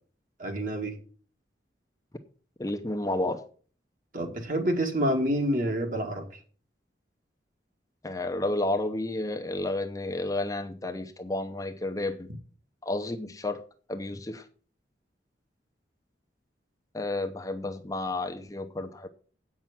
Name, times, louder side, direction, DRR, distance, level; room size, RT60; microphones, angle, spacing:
voice 1, 0.4-0.9 4.1-6.2, equal, 45° right, 3 dB, 2.0 m, -27 dB
voice 2, 2.6-3.4 8.0-12.3 12.8-13.6 13.9-14.5 16.9-19.1, left 2 dB, 20° left, 5 dB, 0.7 m, -31 dB
8.5 x 6.0 x 7.0 m, 0.42 s
head